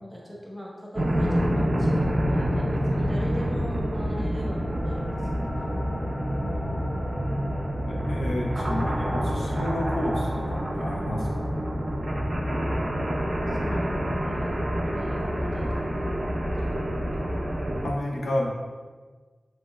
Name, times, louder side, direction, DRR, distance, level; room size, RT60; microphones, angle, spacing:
voice 1, 0.0-5.2 13.3-16.7 17.1-17.2, equal, 5° right, -3 dB, 0.8 m, -40 dB
sound 1, 1.0-17.9, equal, 45° right, 0.4 m, -27 dB
sound 2, 4.3-15.7, equal, 35° left, 0.6 m, -38 dB
voice 2, 6.3-7.3 7.9-11.5 17.8-18.5, left 1 dB, 90° left, -2 dB, 0.4 m, -31 dB
3.0 x 2.8 x 2.3 m, 1.4 s
cardioid pair, 50°, 0 cm